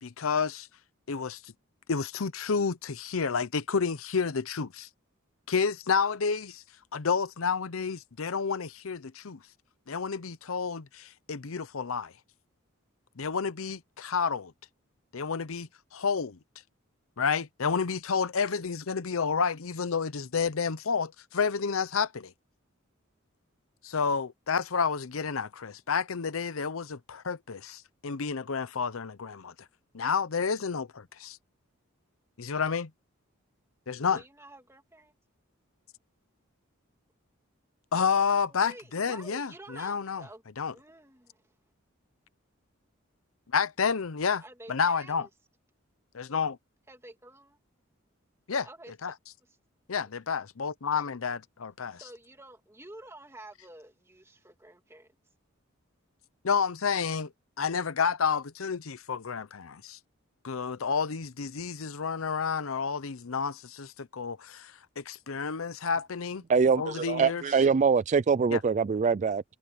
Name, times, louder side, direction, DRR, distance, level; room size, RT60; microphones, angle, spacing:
voice 1, 0.0-0.7 1.1-1.5 1.9-4.9 5.5-6.6 6.9-9.4 9.9-12.1 13.2-14.5 15.1-16.4 17.2-22.3 23.8-29.5 29.9-31.4 32.4-32.9 33.9-34.2 37.9-40.3 40.6-40.7 43.5-44.4 44.7-45.3 46.1-46.6 48.5-48.7 49.0-49.1 49.9-52.0 56.4-57.3 57.6-60.0 60.4-66.4 66.8-67.4 68.5-68.6, left 5 dB, 80° left, 0.7 m, -30 dB
voice 2, 34.1-35.1 38.5-40.4 40.7-41.4 44.4-45.3 46.9-47.6 48.6-48.9 51.9-55.1, right 1 dB, 15° right, 2.4 m, -49 dB
voice 3, 66.5-69.4, right 5 dB, 35° right, 0.3 m, -24 dB
head